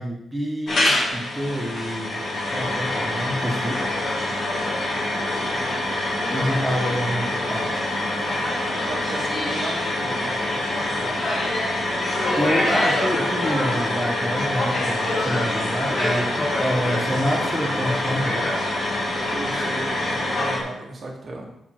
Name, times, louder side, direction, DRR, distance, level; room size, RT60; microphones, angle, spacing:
voice 1, 0.0-2.2 2.5-3.9 6.3-7.7 12.1-18.5, equal, 5° right, -1 dB, 1.1 m, -27 dB
sound 1, 0.7-20.6, left 1 dB, 40° left, 1.7 m, -25 dB
voice 2, 8.1-11.4 19.3-21.5, right 2 dB, 35° right, -1 dB, 1.8 m, -36 dB
6.7 x 6.0 x 4.6 m, 0.79 s
wide cardioid pair, 170°, 0 cm